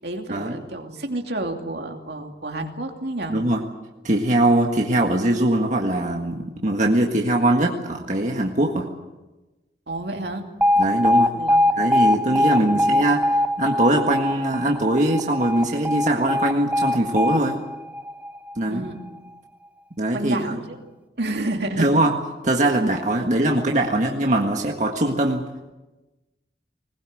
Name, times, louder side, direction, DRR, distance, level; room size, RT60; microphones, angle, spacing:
voice 1, 0.0-3.4 9.9-10.5 11.3-11.6 12.3-12.9 18.7-19.0 20.1-20.8 21.2-21.8, right 2 dB, 70° right, 3 dB, 2.8 m, -30 dB
voice 2, 3.3-3.6 4.0-8.9 10.8-11.3 11.8-13.3 13.6-17.6 18.6-18.8 20.0-20.6 21.8-22.1 22.4-25.4, right 1 dB, 45° right, 1 dB, 1.7 m, -21 dB
Alarm, 10.6-18.7, left 1 dB, 10° right, 0.7 m, -22 dB
20.5 x 20.0 x 7.8 m, 1.1 s
head